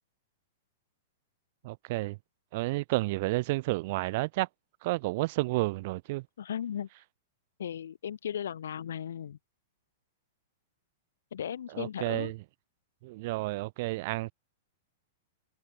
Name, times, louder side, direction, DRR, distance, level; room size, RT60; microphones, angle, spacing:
voice 1, 1.6-2.2 2.5-4.5 4.8-6.2 11.7-12.4 13.0-14.3, right 21 dB, 55° right, 0.5 m, -31 dB
voice 2, 6.4-6.9 7.6-9.4 11.3-12.3, left 9 dB, 85° left, 0.9 m, -36 dB
hypercardioid pair, 135°, 0 cm